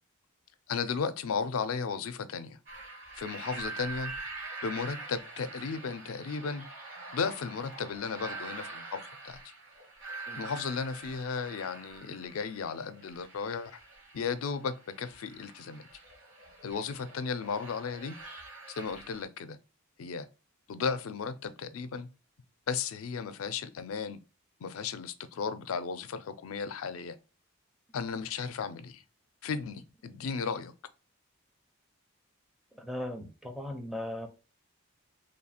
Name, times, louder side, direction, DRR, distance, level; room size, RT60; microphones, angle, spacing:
voice 1, 0.7-2.6 3.1-4.1 4.6-6.7 7.1-9.4 10.4-13.7 14.1-15.8 16.6-18.2 18.7-19.6 20.0-20.3 20.7-22.1 22.7-24.2 24.6-27.2 27.9-29.0 29.4-30.7, left 5 dB, 80° left, 0.4 m, -35 dB
sound 1, 2.7-19.2, right 3 dB, 65° right, 1.1 m, -45 dB
voice 2, 32.7-34.3, left 1 dB, ahead, 0.5 m, -38 dB
3.1 x 2.3 x 4.2 m
head